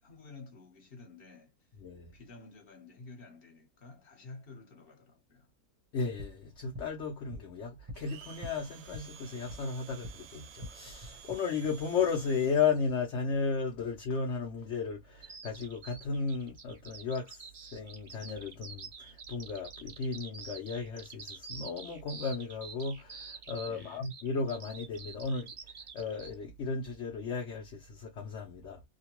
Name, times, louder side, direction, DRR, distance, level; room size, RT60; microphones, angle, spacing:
voice 1, 0.0-1.8 2.1-5.5 23.7-24.1, left 3 dB, 40° left, 1.3 m, -52 dB
voice 2, 1.8-2.1 5.9-28.8, left 5 dB, 55° left, 1.0 m, -34 dB
sound 1, 6.2-10.2 10.5-11.4, left 1 dB, 30° right, 0.9 m, -47 dB
Domestic sounds home sounds, 7.9-13.0, right 9 dB, 70° right, 1.0 m, -53 dB
Bird vocalization bird call bird song, 15.2-26.3, right 5 dB, 50° right, 0.5 m, -47 dB
2.9 x 2.2 x 2.9 m
omnidirectional pair, 1.6 m